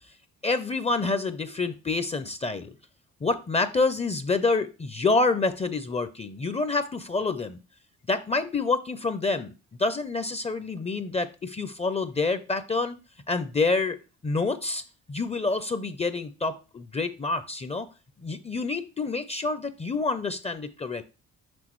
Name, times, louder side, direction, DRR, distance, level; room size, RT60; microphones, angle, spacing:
voice 1, 0.4-2.7 3.2-7.6 8.1-9.5 9.8-13.0 13.3-14.0 14.2-14.8 15.1-17.9 18.2-21.0, left 3 dB, 20° left, 12 dB, 0.5 m, -27 dB
6.1 x 5.7 x 3.1 m, 0.32 s
cardioid pair, 90°, 30 cm